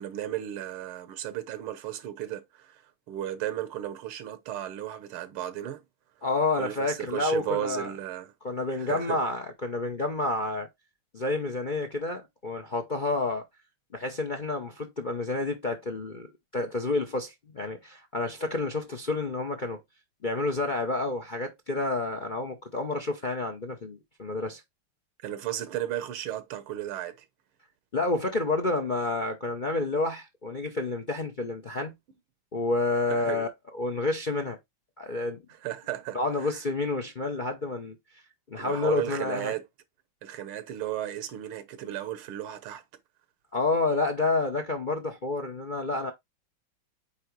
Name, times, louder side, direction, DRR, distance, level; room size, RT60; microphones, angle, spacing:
voice 1, 0.0-5.8 6.6-8.3 8.8-9.2 25.2-27.3 33.1-33.5 35.5-36.6 38.6-39.6 40.2-42.8, right 12 dB, 90° right, 1.8 m, -34 dB
voice 2, 6.2-7.9 8.4-10.7 11.1-13.4 13.9-19.8 20.2-24.6 27.9-31.9 32.5-33.5 33.7-34.6 35.0-35.4 36.1-38.0 38.5-39.5 43.5-46.1, left 2 dB, 50° left, 0.6 m, -29 dB
8.8 x 2.9 x 4.5 m
omnidirectional pair, 2.3 m